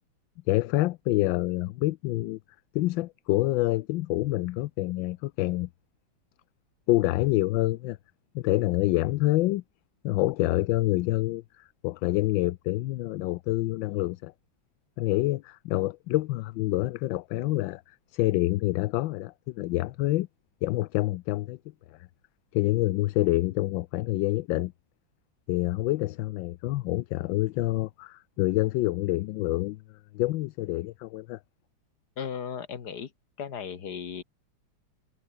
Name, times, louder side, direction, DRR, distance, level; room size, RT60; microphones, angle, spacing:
voice 1, 0.5-2.4 2.7-5.7 6.9-8.0 8.3-9.6 10.0-14.3 15.0-20.3 20.6-21.6 22.5-24.7 25.5-29.8 30.1-31.4, left 17 dB, 80° left, 1.3 m, -27 dB
voice 2, 32.2-33.1 33.4-34.2, left 7 dB, 55° left, 2.2 m, -36 dB
omnidirectional pair, 2.1 m